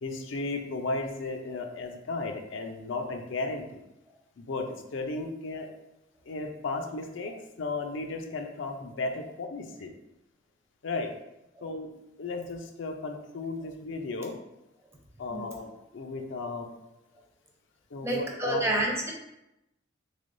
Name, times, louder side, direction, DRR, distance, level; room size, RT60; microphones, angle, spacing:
voice 1, 0.0-3.8 4.4-5.7 6.3-9.9 10.8-11.1 11.6-11.9 12.2-14.3 15.2-16.7 17.9-18.6, left 3 dB, 80° left, 4 dB, 0.5 m, -35 dB
voice 2, 18.0-19.1, right 1 dB, 15° right, -1 dB, 0.5 m, -29 dB
3.6 x 3.3 x 2.6 m, 0.90 s
head